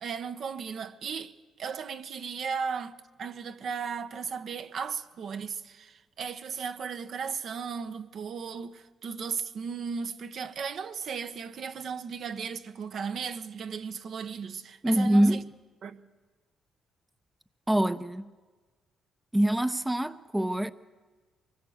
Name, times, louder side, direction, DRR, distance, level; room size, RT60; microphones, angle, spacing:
voice 1, 0.0-15.4 15.8-16.0, right 6 dB, 60° right, 1.0 m, -36 dB
voice 2, 14.8-15.5 17.7-18.3 19.3-20.7, right 1 dB, 10° right, 0.6 m, -25 dB
24.0 x 20.0 x 8.0 m
cardioid pair, 90°, 0 cm